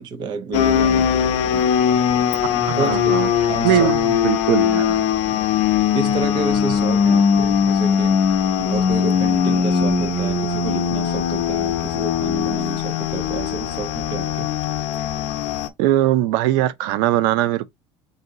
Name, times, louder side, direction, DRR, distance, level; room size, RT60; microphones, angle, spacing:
voice 1, 0.0-1.7 2.5-3.1 3.5-3.9 5.9-14.5, right 4 dB, 35° right, 1.0 m, -30 dB
sound 1, 0.5-15.7, left 7 dB, 55° left, 0.8 m, -20 dB
voice 2, 2.7-3.3 3.6-5.0 15.8-17.7, right 14 dB, 85° right, 0.5 m, -20 dB
4.0 x 2.7 x 4.7 m
cardioid pair, 180°, 12 cm